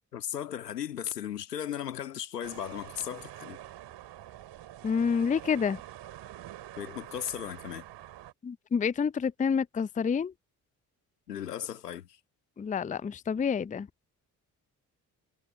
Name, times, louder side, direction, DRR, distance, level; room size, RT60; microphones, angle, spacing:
voice 1, 0.1-3.6 6.8-7.8 11.3-12.2, left 10 dB, 85° left, 1.9 m, -36 dB
sound 1, 2.4-8.3, right 13 dB, 60° right, 3.6 m, -46 dB
voice 2, 4.8-5.8 8.4-10.3 12.6-13.9, left 6 dB, 15° left, 0.6 m, -28 dB
figure-of-eight pair, 40°, 46 cm